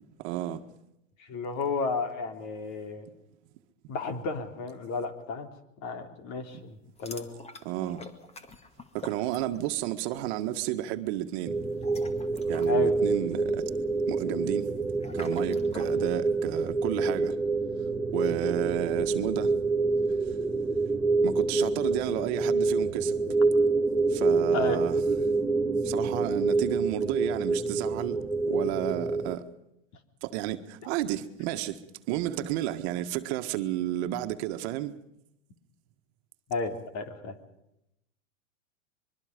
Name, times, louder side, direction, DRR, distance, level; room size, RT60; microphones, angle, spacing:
voice 1, 0.2-0.6 6.5-6.6 7.7-8.0 8.9-11.6 12.5-13.6 14.1-14.7 15.1-17.4 18.1-19.5 21.2-23.2 24.1-25.0 25.8-29.4 30.2-34.9, right 13 dB, 55° right, 1.7 m, -32 dB
voice 2, 1.2-3.1 3.9-5.5 5.8-7.3 12.6-12.9 24.5-24.8 36.5-37.4, left 3 dB, 45° left, 3.5 m, -32 dB
sound 1, 7.0-9.9 10.2-10.5 11.6-16.0, left 2 dB, 15° left, 2.1 m, -46 dB
sound 2, 11.5-29.3, right 3 dB, ahead, 1.3 m, -27 dB
25.0 x 22.5 x 5.3 m
hypercardioid pair, 115°, 39 cm